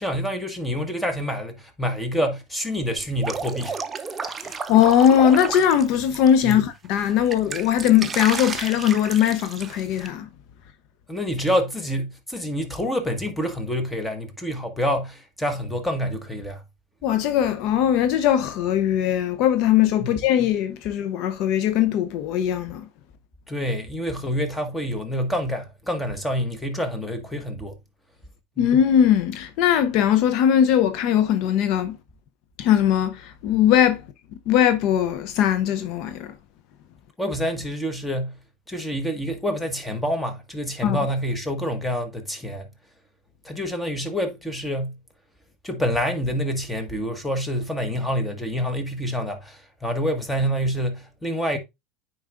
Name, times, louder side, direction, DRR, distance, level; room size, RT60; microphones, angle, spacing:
voice 1, 0.0-3.8 6.4-6.6 11.1-16.6 20.0-20.1 23.5-27.8 28.6-28.7 37.2-38.4 38.7-42.7 43.4-45.0 45.6-51.6, equal, 5° left, 1.4 m, -27 dB
Drip, 3.0-6.5 6.9-10.1, right 5 dB, 20° right, 0.6 m, -32 dB
voice 2, 4.4-10.3 17.0-22.9 28.6-32.0 32.6-34.0 34.5-36.3 40.8-41.0, left 10 dB, 60° left, 0.6 m, -20 dB
9.2 x 4.7 x 2.5 m
supercardioid pair, 105°, 0 cm